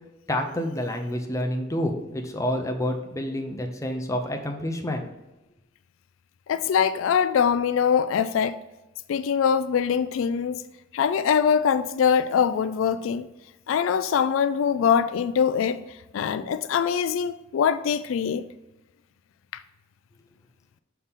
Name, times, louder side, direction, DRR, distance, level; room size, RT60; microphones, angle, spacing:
voice 1, 0.3-5.0, left 1 dB, 15° left, 0.8 m, -28 dB
voice 2, 6.5-8.6 9.1-10.6 10.9-13.3 13.7-18.5 19.5-19.6, left 7 dB, 80° left, 0.3 m, -23 dB
6.4 x 5.7 x 3.6 m
head